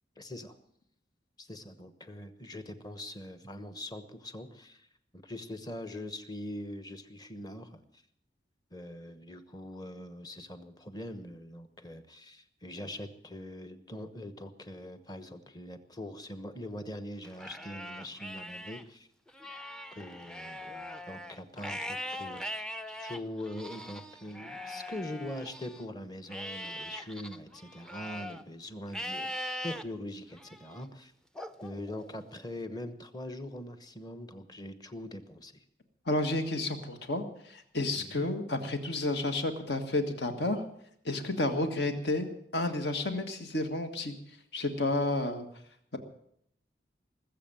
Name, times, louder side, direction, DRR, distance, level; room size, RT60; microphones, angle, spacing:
voice 1, 0.2-0.5 1.4-4.9 5.1-7.8 8.7-19.1 19.9-31.1 31.6-35.6 37.9-38.3, left 1 dB, 20° left, 10 dB, 1.1 m, -42 dB
Livestock farm animals working animals, 17.2-18.8 19.3-25.8 26.3-28.4 28.9-29.8 30.4-30.8 31.4-32.4, left 1 dB, 5° left, 0.5 m, -41 dB
voice 2, 36.1-40.6 41.0-42.3 42.5-44.1 44.5-45.5, left 2 dB, 70° left, 7 dB, 1.7 m, -31 dB
20.0 x 7.7 x 8.9 m, 0.71 s
head